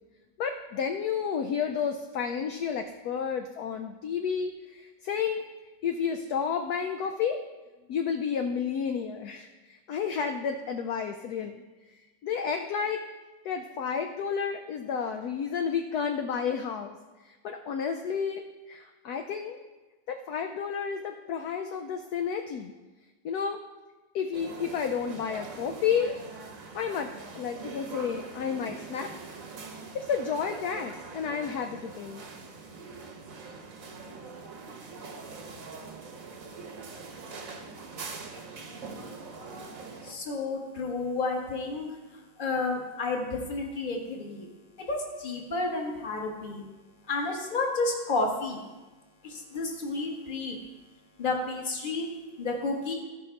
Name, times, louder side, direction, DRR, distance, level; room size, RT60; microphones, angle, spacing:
voice 1, 0.4-5.4 5.8-7.4 7.9-11.6 12.2-13.0 13.4-17.0 17.4-19.6 20.1-22.7 23.2-23.6 24.1-26.1 26.7-29.1 29.9-32.2, left 7 dB, 70° left, 5 dB, 0.9 m, -31 dB
sound 1, 24.3-40.1, right 4 dB, 50° right, 1.2 m, -43 dB
voice 2, 40.0-44.5 44.8-46.7 47.0-48.6 49.2-50.6 51.2-52.1 52.4-52.9, left 3 dB, 30° left, 1 dB, 1.3 m, -31 dB
15.0 x 5.4 x 4.4 m, 1.2 s
omnidirectional pair, 2.1 m